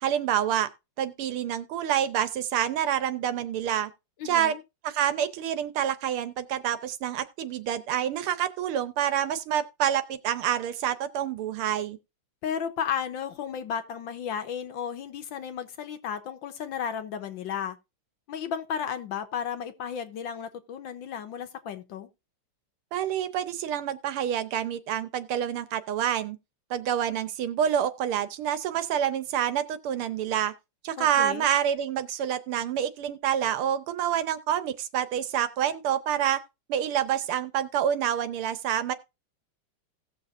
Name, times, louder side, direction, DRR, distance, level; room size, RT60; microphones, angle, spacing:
voice 1, 0.0-0.7 1.0-3.9 4.2-4.6 4.8-12.0 22.9-26.4 26.7-30.5 30.8-36.4 36.7-38.9, right 10 dB, 80° right, 1.7 m, -27 dB
voice 2, 4.2-4.6 12.4-17.8 18.3-22.1 31.0-31.5, left 8 dB, 65° left, 1.5 m, -33 dB
17.0 x 6.6 x 2.6 m
omnidirectional pair, 2.4 m